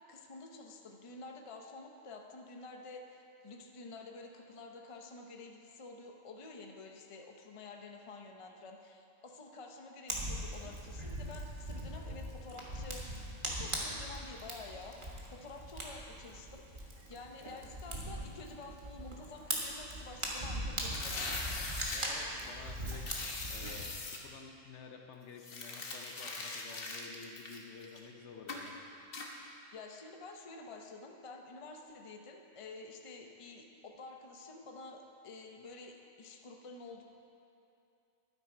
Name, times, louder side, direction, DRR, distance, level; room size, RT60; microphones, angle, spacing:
voice 1, 0.1-13.1 13.4-21.3 29.7-37.0, left 3 dB, 30° left, 2 dB, 0.7 m, -50 dB
Fire, 10.1-23.8, right 1 dB, 40° right, 1.6 m, -41 dB
sound 1, 20.8-22.1 23.0-24.2 25.4-28.1 28.5-28.7 29.1-29.3, left 3 dB, 50° left, 1.2 m, -41 dB
voice 2, 21.9-28.7, left 5 dB, 70° left, 3 dB, 1.1 m, -51 dB
11.5 x 9.7 x 4.4 m, 2.7 s
omnidirectional pair, 1.3 m